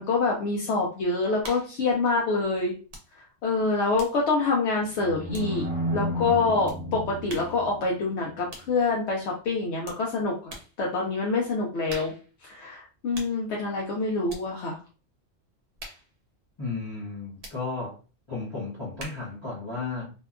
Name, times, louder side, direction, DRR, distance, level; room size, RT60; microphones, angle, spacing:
voice 1, 0.0-2.7 3.2-5.6 5.9-12.1 12.4-14.8, left 3 dB, 75° left, -1 dB, 0.8 m, -26 dB
sound 1, 1.4-1.8 2.9-3.2 3.4-5.8 6.7-6.9 7.3-7.7 8.5-8.8 9.8-10.1 10.5-10.8 11.9-12.3 13.1-13.4 14.3-14.5 15.8-16.1 17.4-17.6 19.0-19.4, right 1 dB, 65° right, 0.9 m, -44 dB
sound 2, 5.0-8.0, equal, 45° right, 1.0 m, -32 dB
voice 2, 16.6-18.0 18.3-20.1, left 4 dB, 30° left, -9 dB, 0.7 m, -34 dB
2.7 x 2.2 x 2.3 m, 0.34 s
omnidirectional pair, 1.2 m